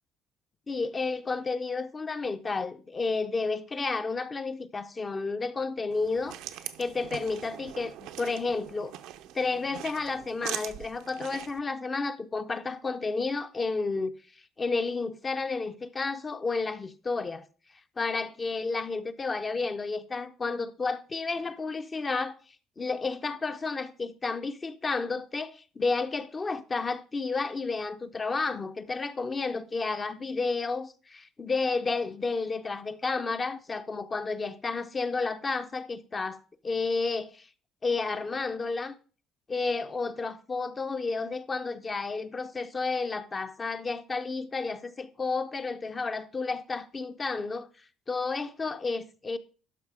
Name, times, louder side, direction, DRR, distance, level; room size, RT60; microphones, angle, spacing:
voice 1, 0.7-8.9 9.3-14.1 14.6-17.5 18.0-22.4 22.8-37.5 37.8-38.9 39.5-47.7 48.1-49.4, left 4 dB, 20° left, 0.6 m, -31 dB
sound 1, 5.9-11.6, right 12 dB, 75° right, 0.7 m, -41 dB
12.0 x 4.9 x 4.9 m
cardioid pair, 140°, 0 cm